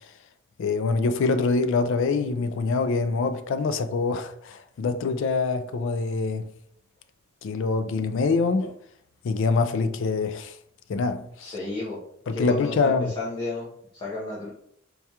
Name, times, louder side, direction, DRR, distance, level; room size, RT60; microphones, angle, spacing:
voice 1, 0.6-6.5 7.4-8.7 9.2-10.6 10.9-11.5 12.3-13.1, left 4 dB, 60° left, 0.3 m, -25 dB
voice 2, 11.4-12.0 12.3-13.7 13.9-14.5, left 2 dB, 25° left, 0.8 m, -32 dB
4.6 x 2.3 x 2.8 m
head